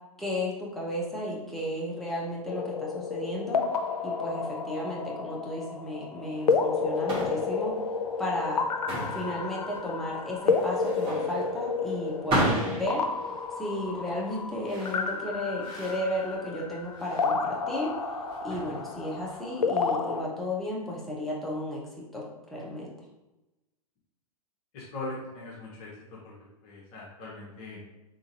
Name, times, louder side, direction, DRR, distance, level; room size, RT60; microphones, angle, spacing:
voice 1, 0.2-3.6 4.0-7.8 8.2-8.7 9.1-13.1 13.6-18.0 18.4-22.2 22.5-22.9, left 1 dB, ahead, -5 dB, 0.7 m, -34 dB
sound 1, 2.5-20.2, left 5 dB, 80° left, 0.4 m, -31 dB
sound 2, 6.4-19.4, right 1 dB, 25° right, 1.3 m, -35 dB
voice 2, 24.7-25.9 26.2-26.3 26.6-27.8, left 2 dB, 40° left, -4 dB, 0.9 m, -40 dB
3.8 x 3.4 x 2.7 m, 1.0 s
figure-of-eight pair, 105°, 20 cm